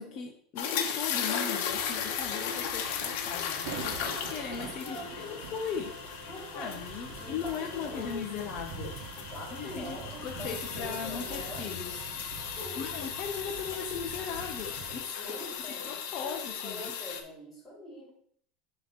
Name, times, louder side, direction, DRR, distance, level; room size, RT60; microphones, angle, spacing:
voice 1, 0.0-6.0 6.5-9.0 9.5-12.0 12.8-15.2 15.8-16.9, left 7 dB, 35° left, 3 dB, 0.6 m, -38 dB
sound 1, 0.6-17.2, left 7 dB, 60° left, 1.0 m, -36 dB
sound 2, 1.6-15.0, right 6 dB, 70° right, 1.0 m, -45 dB
voice 2, 4.6-5.4 6.3-6.8 7.1-8.2 9.3-11.7 12.6-12.9 15.2-18.1, equal, 5° left, -7 dB, 2.8 m, -44 dB
7.6 x 2.9 x 5.6 m, 0.62 s
supercardioid pair, 170°, 0 cm